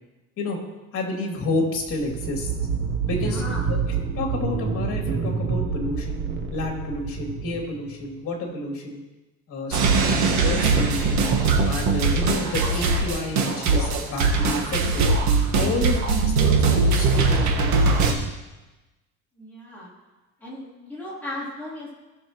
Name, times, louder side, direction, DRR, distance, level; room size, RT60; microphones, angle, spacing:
voice 1, 0.9-2.5 3.1-3.4 3.7-6.2 6.5-9.0 9.5-11.3 11.6-15.1 15.5-18.2, left 2 dB, 45° left, 0 dB, 2.7 m, -30 dB
sound 1, 1.8-8.2, right 5 dB, 35° right, 0.9 m, -28 dB
voice 2, 3.0-3.6 19.4-19.9 20.4-22.0, left 1 dB, 5° left, -8 dB, 3.3 m, -36 dB
sound 2, 9.7-18.1, right 4 dB, 65° right, 1.5 m, -21 dB
17.0 x 6.3 x 3.0 m, 1.1 s
cardioid pair, 140°, 31 cm